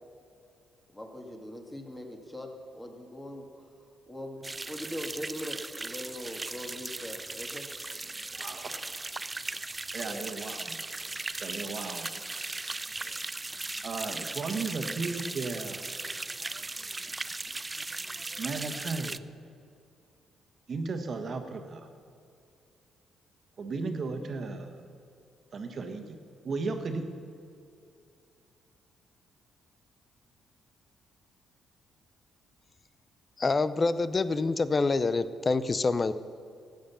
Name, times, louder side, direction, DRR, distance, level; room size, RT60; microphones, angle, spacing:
voice 1, 0.9-7.7 10.0-10.3 11.6-11.8 13.0-13.2, equal, 10° left, 2 dB, 2.0 m, -42 dB
sound 1, 4.4-19.2, right 2 dB, 20° right, 0.4 m, -38 dB
voice 2, 8.3-8.9 9.9-10.7 11.4-12.1 13.8-16.0 18.4-19.2 20.7-21.9 23.6-25.0 25.5-26.2 26.4-27.0, right 4 dB, 50° right, 6 dB, 1.5 m, -35 dB
voice 3, 33.4-36.1, left 3 dB, 30° left, 14 dB, 0.6 m, -26 dB
14.0 x 9.1 x 7.0 m, 2.5 s
cardioid pair, 90°, 0 cm